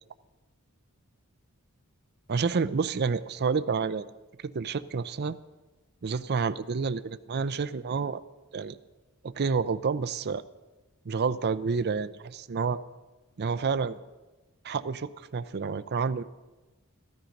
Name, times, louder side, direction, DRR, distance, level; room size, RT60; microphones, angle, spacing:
voice 1, 2.3-4.1 4.4-5.4 6.0-8.2 8.5-8.8 9.2-10.4 11.1-12.8 13.4-14.0 14.6-16.2, right 5 dB, 50° right, 14 dB, 0.5 m, -29 dB
14.5 x 14.5 x 5.3 m, 1.2 s
head